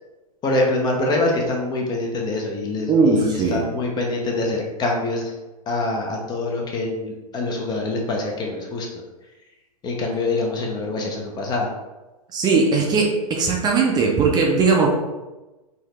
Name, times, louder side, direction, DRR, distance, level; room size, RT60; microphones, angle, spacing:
voice 1, 0.4-5.3 5.7-9.0 9.8-11.7, left 2 dB, 20° left, 0 dB, 0.6 m, -25 dB
voice 2, 2.9-3.6 12.3-14.9, right 4 dB, 20° right, -1 dB, 0.5 m, -19 dB
3.9 x 2.7 x 3.2 m, 1.1 s
figure-of-eight pair, 105°, 20 cm